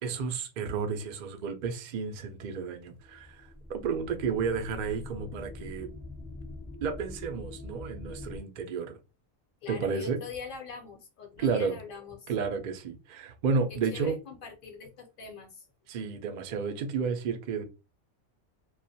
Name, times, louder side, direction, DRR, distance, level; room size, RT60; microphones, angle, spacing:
voice 1, 0.0-5.9 6.8-9.0 9.7-10.2 11.4-11.8 12.3-14.2 15.9-17.6, right 5 dB, 70° right, 0.4 m, -32 dB
sound 1, 3.0-8.4, left 2 dB, 10° left, 0.4 m, -44 dB
voice 2, 9.6-12.3 13.7-15.6, left 6 dB, 50° left, 0.7 m, -43 dB
2.3 x 2.1 x 2.6 m
omnidirectional pair, 1.3 m